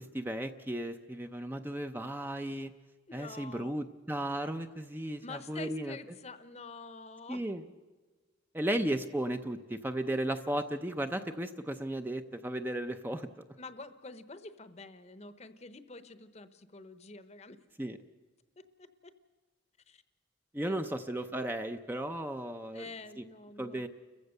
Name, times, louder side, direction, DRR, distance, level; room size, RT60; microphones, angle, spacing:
voice 1, 0.0-2.7 3.1-6.0 7.3-7.6 8.5-13.3 17.8-18.0 20.5-22.9 23.6-23.9, right 1 dB, 10° right, 7 dB, 0.6 m, -35 dB
voice 2, 3.1-3.8 5.2-7.4 13.6-17.6 18.6-19.1 19.9-20.0 20.6-21.0 22.7-23.8, left 3 dB, 35° left, 11 dB, 0.9 m, -47 dB
30.0 x 15.0 x 6.6 m, 1.3 s
head